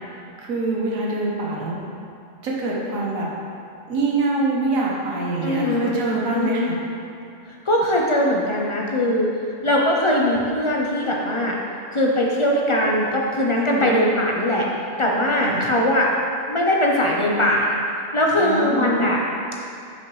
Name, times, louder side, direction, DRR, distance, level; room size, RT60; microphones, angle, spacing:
voice 1, 0.4-1.8 2.4-3.3 3.9-6.8 13.5-14.0 15.4-15.6 18.4-19.1, right 2 dB, 90° right, -3 dB, 1.3 m, -25 dB
voice 2, 5.4-5.9 6.3-6.7 7.7-9.3 9.6-11.6 11.9-14.7 15.0-16.1 16.5-17.8 18.1-19.2, left 1 dB, 35° left, -2 dB, 0.5 m, -20 dB
7.8 x 5.7 x 3.2 m, 2.5 s
omnidirectional pair, 1.4 m